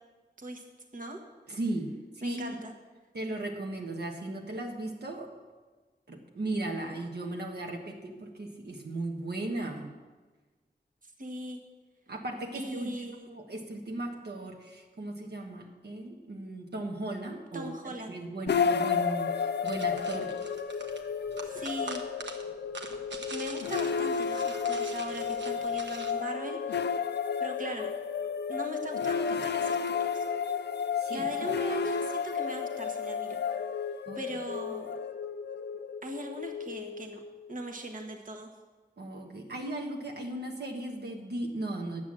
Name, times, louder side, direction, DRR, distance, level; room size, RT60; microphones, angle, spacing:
voice 1, 1.5-2.5 3.1-5.3 6.1-9.9 12.1-20.3 30.9-31.3 34.1-34.2 39.0-42.0, right 2 dB, 70° right, 1 dB, 1.3 m, -37 dB
voice 2, 2.2-2.7 11.0-11.6 12.5-13.3 17.5-18.1 21.4-22.0 23.3-27.0 27.4-27.9 28.5-30.2 31.1-33.4 34.1-35.0 36.0-37.2 37.5-38.5, right 1 dB, 50° right, 2 dB, 1.4 m, -40 dB
sound 1, 18.5-37.6, left 6 dB, 75° left, 0.5 m, -32 dB
sound 2, 19.6-26.1, right 3 dB, 90° right, 1.2 m, -44 dB
10.5 x 8.1 x 7.5 m, 1.3 s
wide cardioid pair, 105°, 18 cm